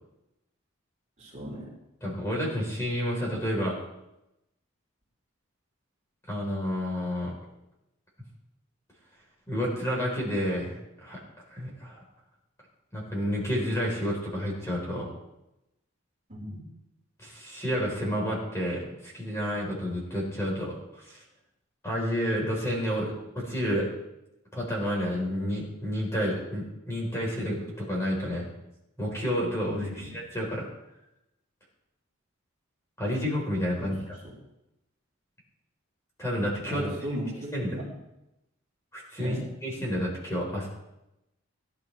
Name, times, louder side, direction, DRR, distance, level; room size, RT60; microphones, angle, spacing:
voice 1, 1.2-1.7 16.3-16.6 29.7-30.1 33.8-34.2 36.7-37.9 39.2-39.5, equal, 35° right, -4 dB, 3.9 m, -37 dB
voice 2, 2.0-3.8 6.3-7.3 9.5-11.2 11.5-12.0 12.9-15.1 17.2-21.2 21.8-23.9 24.5-28.5 29.0-30.7 33.0-34.2 36.2-36.9 37.5-37.8 38.9-39.4 39.6-40.7, equal, 15° left, -3 dB, 3.8 m, -30 dB
18.5 x 11.0 x 3.3 m, 0.90 s
head